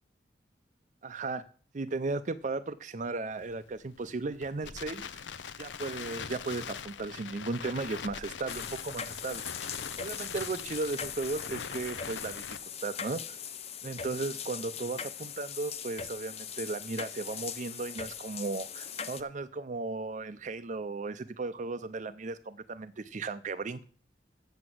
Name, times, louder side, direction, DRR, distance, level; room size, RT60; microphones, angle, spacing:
voice 1, 1.0-1.4 1.7-5.1 5.6-9.4 10.0-13.4 13.8-23.8, right 3 dB, 45° right, 10 dB, 0.5 m, -36 dB
Crackle, 3.3-12.6, left 6 dB, 85° left, 0.6 m, -42 dB
sound 1, 8.5-19.2, left 7 dB, 35° left, 0.6 m, -40 dB
7.7 x 7.0 x 7.8 m, 0.42 s
head